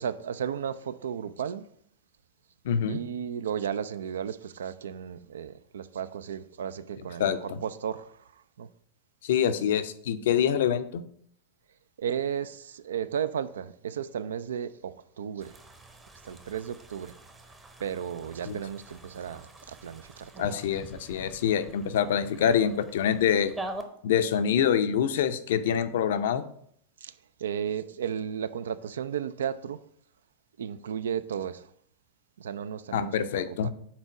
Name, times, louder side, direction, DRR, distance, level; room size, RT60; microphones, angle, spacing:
voice 1, 0.0-1.7 2.9-8.7 12.0-15.6 16.2-17.1 17.8-20.5 27.0-29.8 30.6-31.7 32.4-33.1 33.5-33.7, right 8 dB, 65° right, 0.3 m, -34 dB
voice 2, 2.6-3.0 7.2-7.6 9.2-11.0 18.5-18.6 20.4-23.5 24.0-26.4 32.9-33.7, left 8 dB, 55° left, 0.5 m, -25 dB
sound 1, 15.4-23.8, right 2 dB, 15° right, 0.8 m, -45 dB
6.0 x 4.2 x 4.8 m
figure-of-eight pair, 90°, 0 cm